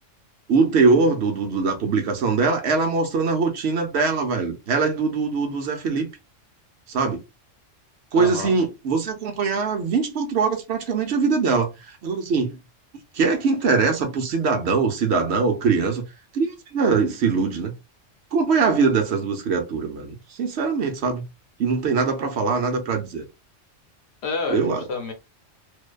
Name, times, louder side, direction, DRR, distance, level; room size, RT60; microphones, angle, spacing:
voice 1, 0.5-6.1 6.9-7.2 8.1-12.6 13.1-16.0 16.3-17.7 18.3-21.2 21.6-23.2 24.5-24.8, right 4 dB, 65° right, 0.8 m, -22 dB
voice 2, 8.1-8.5 24.2-25.1, left 4 dB, 65° left, 0.9 m, -28 dB
2.5 x 2.2 x 2.2 m
omnidirectional pair, 1.3 m